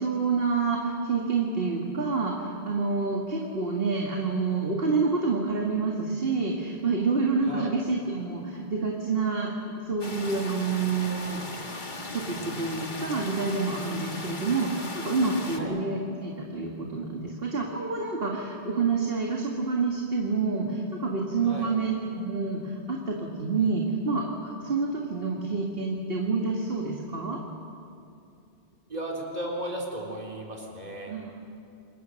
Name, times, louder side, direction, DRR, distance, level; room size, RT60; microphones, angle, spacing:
voice 1, 0.0-11.4 12.1-27.4 31.1-31.4, right 4 dB, 60° right, -1 dB, 2.3 m, -28 dB
sound 1, 10.0-15.6, left 2 dB, 45° left, 2.0 m, -37 dB
voice 2, 28.9-31.1, right 1 dB, 40° right, -2 dB, 3.9 m, -35 dB
28.5 x 22.5 x 6.5 m, 2.6 s
omnidirectional pair, 1.1 m